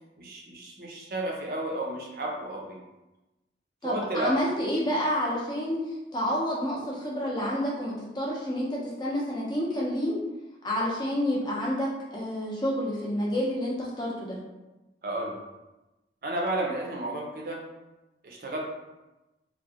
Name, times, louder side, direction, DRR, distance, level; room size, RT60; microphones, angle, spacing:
voice 1, 0.2-2.8 3.8-4.3 15.0-15.3 16.2-17.6 18.2-18.6, right 1 dB, 55° right, -1 dB, 0.5 m, -32 dB
voice 2, 3.8-10.2 10.6-14.4, equal, 25° left, -5 dB, 0.5 m, -29 dB
2.5 x 2.0 x 2.7 m, 1.0 s
head